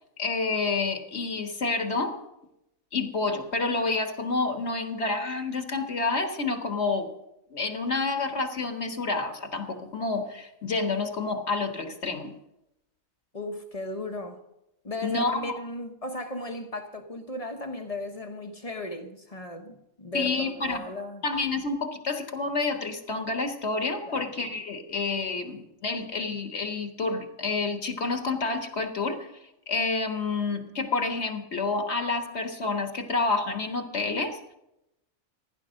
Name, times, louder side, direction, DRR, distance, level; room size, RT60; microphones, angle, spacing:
voice 1, 0.2-2.1 2.9-7.1 7.5-12.3 15.0-15.6 20.1-20.8 21.2-29.3 29.7-34.5, left 3 dB, 55° left, 1.7 m, -29 dB
voice 2, 13.3-14.4 14.8-21.2 24.1-24.3, left 1 dB, 30° left, 1.2 m, -36 dB
16.0 x 11.0 x 6.4 m
omnidirectional pair, 1.4 m